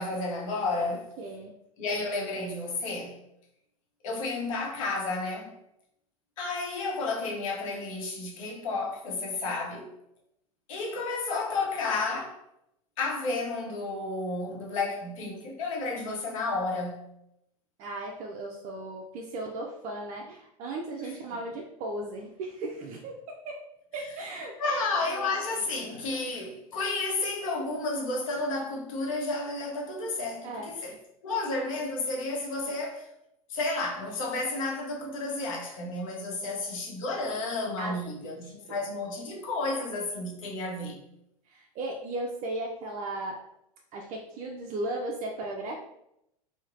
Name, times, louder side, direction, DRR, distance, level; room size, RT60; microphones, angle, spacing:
voice 1, 0.0-1.1 1.8-3.2 4.0-5.5 6.4-9.9 10.7-12.4 13.0-17.1 21.0-21.1 24.6-30.9 31.2-33.1 33.5-41.0, left 3 dB, 70° left, 0.8 m, -32 dB
voice 2, 1.2-1.5 17.8-23.6 23.9-25.3 30.4-31.0 32.7-32.9 36.4-36.5 37.8-38.0 38.2-38.8 41.5-43.4 43.9-45.8, right 2 dB, 40° right, 0.4 m, -37 dB
3.0 x 2.1 x 2.5 m
hypercardioid pair, 85°, 18 cm